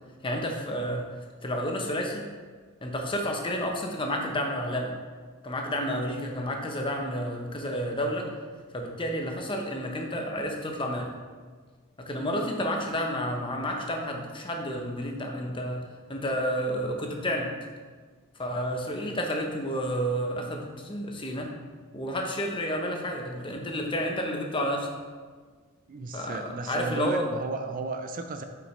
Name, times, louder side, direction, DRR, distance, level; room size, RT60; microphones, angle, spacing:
voice 1, 0.2-1.1 1.4-2.2 2.8-4.9 5.4-8.3 8.7-11.1 12.0-15.8 16.1-17.5 18.4-21.5 21.9-24.9 26.1-27.2, equal, 25° left, 2 dB, 0.8 m, -30 dB
voice 2, 25.9-28.4, right 3 dB, 40° right, 6 dB, 0.4 m, -34 dB
7.7 x 5.8 x 3.2 m, 1.5 s
head